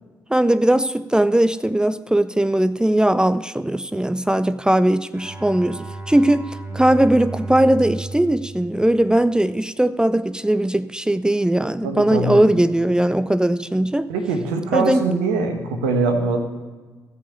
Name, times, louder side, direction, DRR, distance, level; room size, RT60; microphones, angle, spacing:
voice 1, 0.3-14.1 14.7-15.1, right 1 dB, 10° right, 0.5 m, -19 dB
Bowed string instrument, 5.1-9.6, right 3 dB, 30° right, 3.5 m, -34 dB
voice 2, 11.8-12.4 14.1-16.4, right 3 dB, 85° right, 1.3 m, -22 dB
15.5 x 5.5 x 8.3 m
hypercardioid pair, 40°, 9 cm